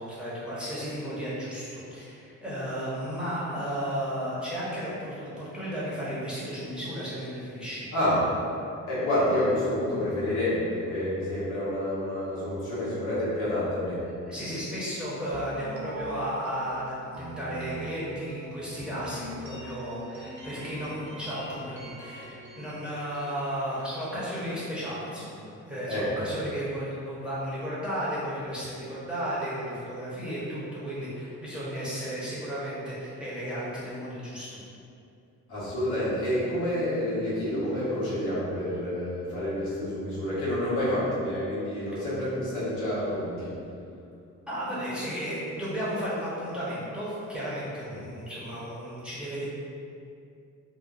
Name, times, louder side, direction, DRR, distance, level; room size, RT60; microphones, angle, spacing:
voice 1, 0.0-7.9 14.1-34.6 44.5-49.4, equal, 5° right, -10 dB, 0.8 m, -34 dB
voice 2, 8.9-14.0 25.9-26.1 35.5-43.5, left 1 dB, 85° left, -9 dB, 1.0 m, -28 dB
sound 1, 15.3-25.1, equal, 75° right, 0.6 m, -44 dB
2.7 x 2.2 x 2.3 m, 2.5 s
cardioid pair, 90°, 30 cm